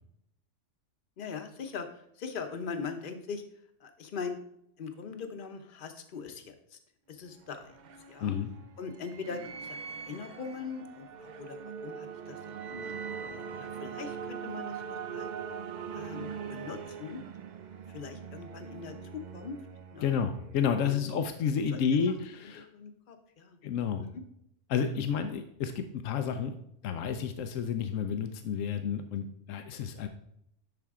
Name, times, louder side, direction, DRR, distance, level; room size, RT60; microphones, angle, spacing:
voice 1, 1.2-3.4 3.8-4.4 4.8-6.8 7.1-7.7 8.1-8.4 8.8-15.3 15.9-17.2 17.9-18.9 19.3-19.6 19.9-20.1 20.8-21.2 21.7-21.8 22.7-23.6 24.0-24.2, left 5 dB, 45° left, 7 dB, 0.9 m, -41 dB
sound 1, 7.2-20.9, right 6 dB, 55° right, 0.5 m, -42 dB
voice 2, 20.0-22.7 23.6-24.0 24.7-26.5 26.8-30.1, left 7 dB, 85° left, 8 dB, 1.0 m, -30 dB
11.0 x 4.4 x 3.6 m, 0.74 s
omnidirectional pair, 1.3 m